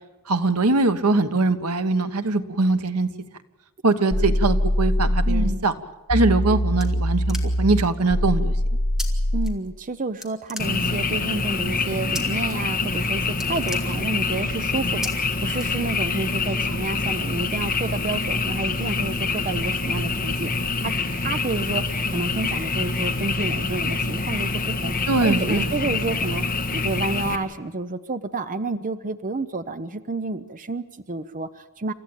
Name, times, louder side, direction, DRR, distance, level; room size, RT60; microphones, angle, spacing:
voice 1, 0.3-3.1 3.8-5.7 6.1-8.5 25.1-25.7, right 3 dB, 90° right, 9 dB, 1.3 m, -22 dB
sound 1, 4.1-5.6 6.1-9.6, equal, 85° left, 1.9 m, -22 dB
voice 2, 5.2-5.7 9.3-24.9 25.2-31.9, right 3 dB, 35° right, 11 dB, 0.7 m, -30 dB
sound 2, 6.3-7.8 9.0-9.1 9.4-9.9 10.2-11.2 12.1-12.5 12.9-13.0 13.3-14.4 15.0-15.1 15.5-16.2, left 1 dB, ahead, 2.3 m, -36 dB
Frog, 10.6-27.4, left 3 dB, 40° left, 1.8 m, -26 dB
29.0 x 14.0 x 8.9 m, 1.1 s
head